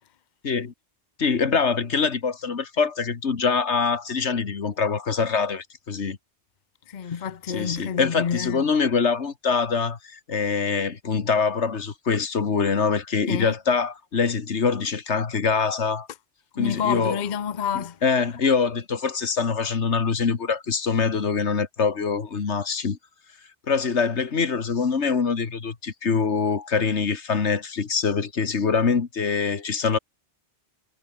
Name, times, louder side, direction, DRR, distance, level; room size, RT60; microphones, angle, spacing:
voice 1, 1.2-6.2 7.5-16.1 16.6-17.2 17.7-23.0 23.7-30.0, left 5 dB, 75° left, 1.9 m, -24 dB
voice 2, 6.9-8.7 13.3-13.5 16.6-18.0, left 7 dB, 45° left, 0.9 m, -28 dB
omnidirectional pair, 1.2 m